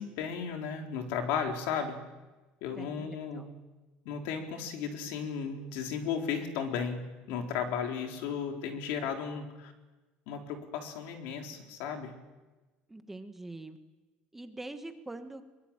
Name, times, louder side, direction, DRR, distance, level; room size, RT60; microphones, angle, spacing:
voice 1, 0.0-2.0 2.6-3.5 4.0-9.7 10.3-12.1, left 6 dB, 85° left, 3 dB, 4.3 m, -35 dB
voice 2, 2.8-3.5 12.9-13.8 14.3-15.4, right 2 dB, 5° right, 7 dB, 1.4 m, -44 dB
23.5 x 21.5 x 9.0 m, 1.2 s
cardioid pair, 170°, 3 cm